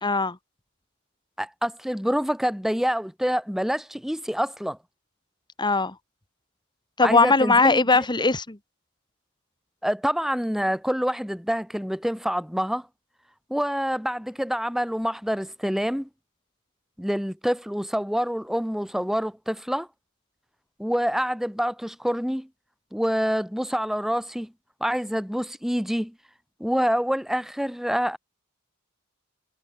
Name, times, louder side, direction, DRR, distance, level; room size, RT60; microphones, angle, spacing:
voice 1, 0.0-0.4 5.6-5.9 7.0-8.6, left 3 dB, 20° left, 1.9 m, -20 dB
voice 2, 1.4-4.8 7.0-8.1 9.8-12.9 13.5-16.1 17.0-19.9 20.8-22.5 22.9-24.5 24.8-26.1 26.6-28.2, equal, ahead, 3.5 m, -26 dB
head